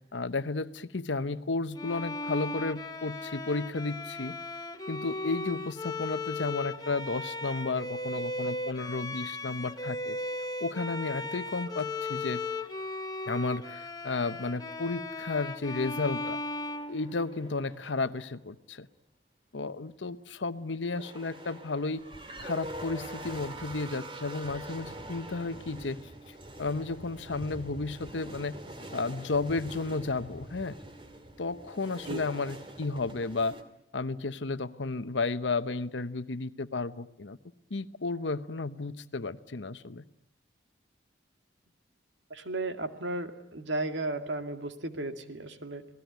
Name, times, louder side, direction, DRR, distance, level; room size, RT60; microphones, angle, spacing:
voice 1, 0.0-4.4 4.9-10.2 10.6-12.5 13.3-16.4 16.9-18.9 19.5-22.0 22.4-28.6 28.9-30.8 31.4-33.6 33.9-37.4 37.7-40.0, left 3 dB, 80° left, 13 dB, 0.9 m, -33 dB
Bowed string instrument, 1.8-17.6, left 2 dB, 20° left, 1.1 m, -37 dB
sound 1, 15.9-18.2 20.8-33.6, right 1 dB, 30° right, 2.4 m, -45 dB
voice 2, 42.3-45.9, right 2 dB, 80° right, 7 dB, 2.1 m, -34 dB
27.5 x 18.5 x 9.3 m, 0.80 s
head